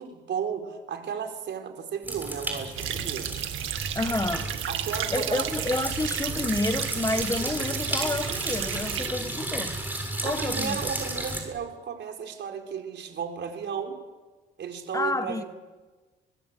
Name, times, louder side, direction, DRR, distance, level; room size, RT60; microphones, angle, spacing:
voice 1, 0.0-3.3 4.7-5.5 10.2-14.0 14.6-15.4, right 7 dB, 65° right, 4.7 m, -34 dB
sound 1, 2.0-11.4, right 1 dB, 10° right, 7.6 m, -33 dB
sound 2, 2.8-9.1, right 10 dB, 85° right, 2.0 m, -33 dB
voice 2, 3.9-4.5 5.1-9.9 10.2-10.8 14.9-15.4, left 2 dB, 15° left, 1.3 m, -29 dB
23.5 x 21.5 x 8.3 m
cardioid pair, 90°, 20 cm